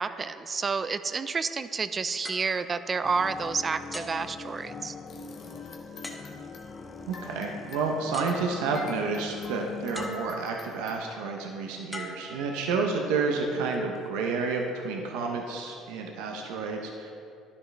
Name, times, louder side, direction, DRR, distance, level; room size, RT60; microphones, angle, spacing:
voice 1, 0.0-4.9, right 5 dB, 35° right, 13 dB, 0.5 m, -30 dB
sound 1, 2.2-3.4 3.9-5.1 6.0-6.7 7.8-7.9 8.1-9.0 9.9-10.7 11.9-13.0 13.7-14.0, left 1 dB, 10° left, 1.3 m, -43 dB
sound 2, 3.0-10.1, left 4 dB, 30° left, 0.7 m, -42 dB
sound 3, 5.1-11.0, left 5 dB, 65° left, 1.3 m, -48 dB
voice 2, 7.1-17.1, right 4 dB, 85° right, 1 dB, 0.9 m, -30 dB
11.0 x 9.8 x 3.4 m, 2.5 s
supercardioid pair, 80°, 0 cm